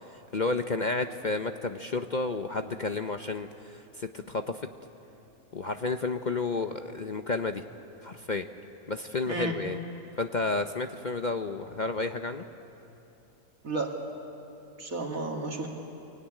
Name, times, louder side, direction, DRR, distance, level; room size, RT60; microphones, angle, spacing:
voice 1, 0.1-4.6 5.5-7.6 8.0-8.5 8.9-9.8 10.2-12.4, left 3 dB, 45° left, 7 dB, 0.7 m, -31 dB
voice 2, 13.6-14.0 14.8-15.7, right 2 dB, 65° right, 1 dB, 2.5 m, -32 dB
24.5 x 23.0 x 10.0 m, 3.0 s
omnidirectional pair, 1.6 m